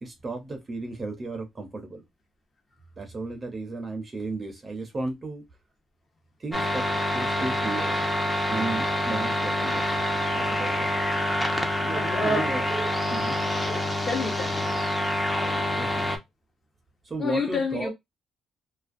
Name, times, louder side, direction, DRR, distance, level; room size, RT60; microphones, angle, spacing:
voice 1, 0.0-2.1 3.0-5.5 6.4-8.0 8.5-10.0 10.3-10.9 11.8-13.4 15.8-16.1 17.0-17.9, right 2 dB, 35° right, 0.6 m, -34 dB
sound 1, 6.5-16.2, left 1 dB, 10° left, 0.6 m, -26 dB
voice 2, 11.9-12.5 13.7-14.6 17.2-17.9, left 3 dB, 35° left, 1.0 m, -29 dB
2.4 x 2.2 x 2.4 m
cardioid pair, 90°, 0 cm